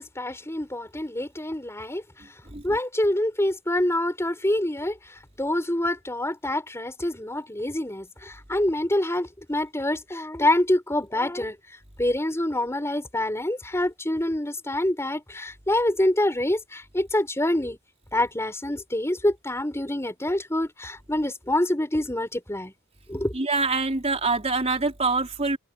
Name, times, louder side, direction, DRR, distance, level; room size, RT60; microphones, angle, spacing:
voice 1, 0.0-2.0 2.6-5.0 5.4-11.6 12.0-17.8 18.1-22.7 23.1-23.3, left 1 dB, 10° left, 4.8 m, -26 dB
voice 2, 23.3-25.6, right 3 dB, 30° right, 4.0 m, -25 dB
head